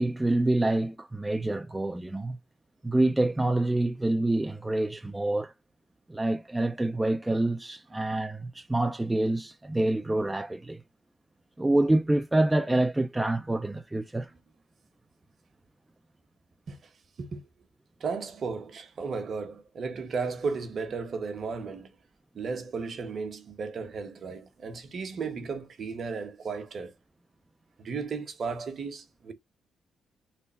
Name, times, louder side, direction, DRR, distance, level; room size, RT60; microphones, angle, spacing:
voice 1, 0.0-2.4 2.8-5.5 6.1-10.8 11.6-14.3, right 2 dB, 10° right, 0.4 m, -26 dB
voice 2, 17.2-17.5 18.0-21.9 22.3-26.9 27.8-29.3, right 4 dB, 50° right, 0.9 m, -35 dB
3.4 x 2.1 x 4.2 m
cardioid pair, 90°, 0 cm